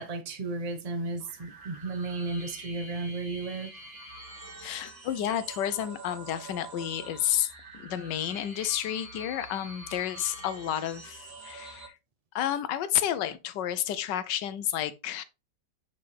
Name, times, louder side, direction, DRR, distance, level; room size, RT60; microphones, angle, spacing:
voice 1, 0.0-3.7, right 3 dB, 35° right, 0.6 m, -34 dB
sound 1, 1.2-11.9, right 2 dB, 50° right, 2.6 m, -46 dB
voice 2, 4.6-7.5 7.7-11.9 12.3-15.2, left 11 dB, 80° left, 1.3 m, -31 dB
5.5 x 5.3 x 3.3 m
omnidirectional pair, 1.9 m